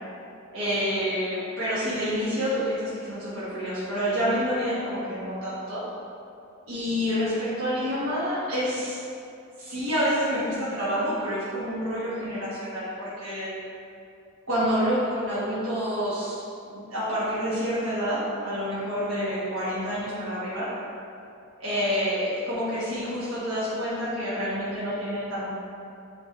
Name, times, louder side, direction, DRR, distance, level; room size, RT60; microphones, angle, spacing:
voice 1, 0.5-5.8 6.7-9.0 9.6-13.5 14.5-16.4 16.7-20.7 21.6-25.5, equal, 70° right, -10 dB, 1.3 m, -28 dB
6.3 x 3.8 x 4.0 m, 2.6 s
head